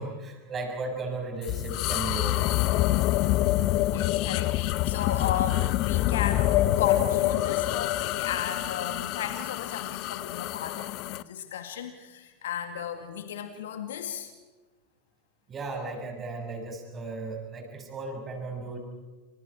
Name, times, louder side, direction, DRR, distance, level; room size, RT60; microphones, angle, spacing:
voice 1, 0.0-2.4 15.5-18.8, right 3 dB, 25° right, 3 dB, 6.8 m, -35 dB
sound 1, 1.4-11.2, left 15 dB, 45° left, 0.8 m, -26 dB
voice 2, 3.9-14.3, left 9 dB, 65° left, 7 dB, 2.3 m, -35 dB
29.0 x 27.5 x 4.9 m, 1.3 s
figure-of-eight pair, 85°, 0 cm